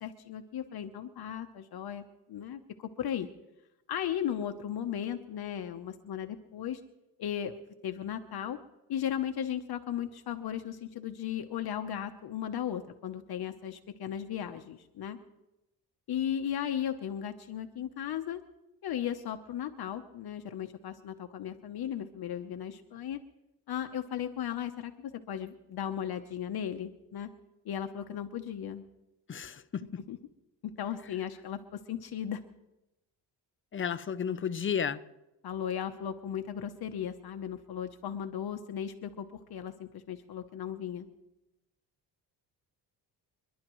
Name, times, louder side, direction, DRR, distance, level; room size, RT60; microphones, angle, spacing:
voice 1, 0.0-2.6 3.0-3.3 3.9-6.8 7.2-7.5 7.8-8.6 8.9-15.2 16.1-18.4 18.8-23.2 23.7-27.3 27.6-28.8 30.1-30.2 30.6-32.4 35.4-41.1, left 9 dB, 60° left, 1.0 m, -36 dB
voice 2, 29.3-29.8 33.7-35.0, left 7 dB, 30° left, 0.7 m, -32 dB
30.0 x 11.5 x 3.1 m
cardioid pair, 120°, 42 cm